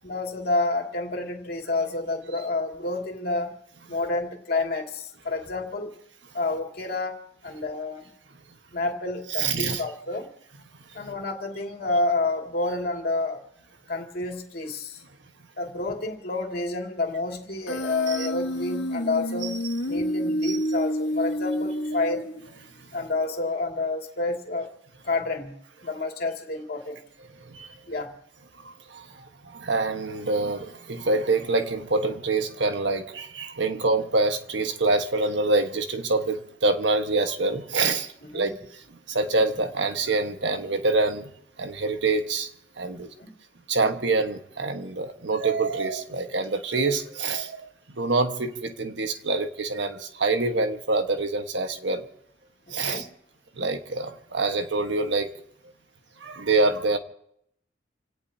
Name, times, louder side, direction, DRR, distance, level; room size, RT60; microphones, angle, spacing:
voice 1, 0.0-3.6 3.9-5.9 6.3-8.1 8.7-10.3 10.9-13.5 13.9-15.0 15.6-22.2 22.9-24.7 25.0-27.0 27.9-28.2 38.3-38.6 42.9-43.3 52.7-53.1, left 2 dB, 60° left, 2 dB, 2.5 m, -29 dB
voice 2, 9.4-9.8 10.9-11.1 18.1-18.3 19.4-19.7 20.4-20.6 27.3-27.8 28.6-41.3 41.6-42.5 42.8-43.1 43.7-52.1 52.7-53.1 53.6-55.3 56.2-57.0, right 3 dB, 90° right, 6 dB, 1.4 m, -26 dB
Human voice, 17.7-22.6, equal, 80° left, 1.2 m, -29 dB
28.5 x 17.5 x 2.8 m, 0.73 s
head